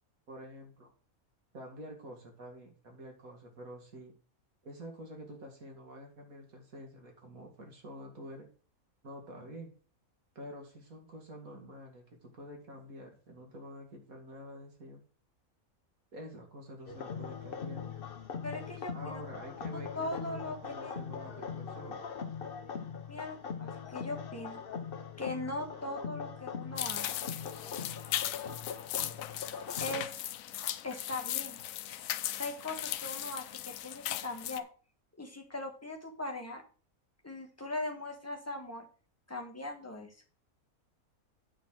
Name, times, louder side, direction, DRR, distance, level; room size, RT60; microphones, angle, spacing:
voice 1, 0.3-0.9 1.5-4.1 4.6-8.5 9.0-9.7 10.4-15.0 16.1-17.9 18.9-22.0, equal, 70° right, 2 dB, 2.7 m, -48 dB
sound 1, 16.9-30.0, left 6 dB, 45° left, 0.9 m, -41 dB
voice 2, 18.4-19.2 19.7-20.6 20.8-20.9 23.1-24.6 25.2-27.3 27.6-28.0 29.8-30.2 30.8-31.6 32.3-34.7 35.2-36.6 37.2-38.9 39.3-40.1, left 2 dB, 10° left, 3 dB, 1.4 m, -40 dB
sound 2, 26.8-34.6, left 12 dB, 75° left, 0.9 m, -38 dB
9.3 x 4.2 x 6.3 m, 0.39 s
omnidirectional pair, 1.5 m